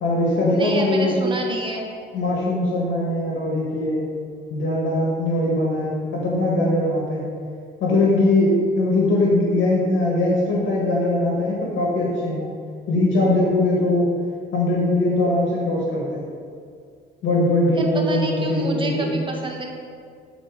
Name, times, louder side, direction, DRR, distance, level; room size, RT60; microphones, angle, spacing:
voice 1, 0.0-1.2 2.1-4.0 4.5-7.2 7.8-12.5 12.9-14.1 14.5-16.2 17.2-19.2, left 1 dB, 75° left, -4 dB, 1.6 m, -21 dB
voice 2, 0.5-1.8 17.7-19.7, right 2 dB, 25° right, 0 dB, 1.2 m, -28 dB
8.1 x 4.0 x 4.8 m, 2.2 s
cardioid pair, 90°, 20 cm